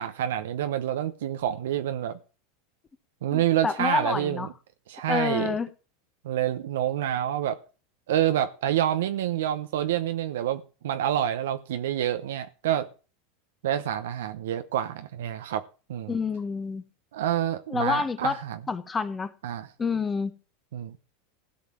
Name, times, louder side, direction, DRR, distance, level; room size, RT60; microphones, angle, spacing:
voice 1, 0.0-2.2 3.2-4.5 4.9-5.6 6.2-7.6 8.1-12.9 13.6-15.6 15.9-16.2 17.1-18.6 19.4-19.7 20.7-21.0, right 11 dB, 80° right, 0.8 m, -27 dB
voice 2, 3.3-4.5 5.1-5.7 16.1-16.8 17.7-18.3 18.7-19.3 19.8-20.3, left 5 dB, 20° left, 1.3 m, -28 dB
15.5 x 5.5 x 7.6 m
supercardioid pair, 120°, 0 cm